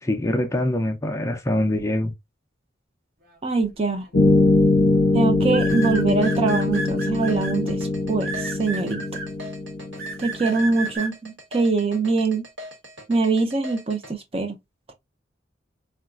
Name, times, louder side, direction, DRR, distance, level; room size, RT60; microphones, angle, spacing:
voice 1, 0.0-2.1, left 1 dB, 15° left, 0.4 m, -24 dB
voice 2, 3.4-4.1 5.1-9.0 10.2-12.4 13.1-14.6 14.9-15.0, right 3 dB, 30° right, 0.6 m, -23 dB
sound 1, 4.0-4.3 5.5-7.5 8.2-9.3 10.0-11.1, right 3 dB, 55° right, 1.0 m, -31 dB
sound 2, 4.1-10.7, left 2 dB, 70° left, 0.7 m, -22 dB
sound 3, 5.7-14.1, left 1 dB, 80° right, 1.4 m, -41 dB
3.8 x 2.3 x 2.3 m
head